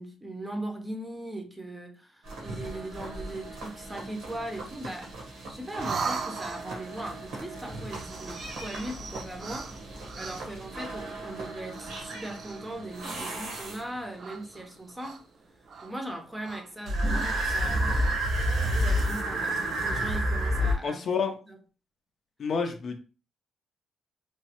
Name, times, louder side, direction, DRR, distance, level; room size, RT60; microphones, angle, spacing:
voice 1, 0.0-5.2 5.5-9.7 10.2-15.2 15.8-18.2 18.6-21.6, right 1 dB, 10° right, 0.6 m, -39 dB
sound 1, 2.2-14.1 16.8-20.7, equal, 85° right, 1.0 m, -32 dB
sound 2, 5.8-6.9 7.8-10.7 11.6-12.8 13.4-13.9 14.2-15.4 15.7-15.9 16.4-17.4 17.8-18.2, right 5 dB, 55° right, 0.4 m, -39 dB
voice 2, 20.8-21.4 22.4-23.0, left 5 dB, 50° left, 0.5 m, -29 dB
3.1 x 2.1 x 2.8 m
cardioid pair, 90°, 0 cm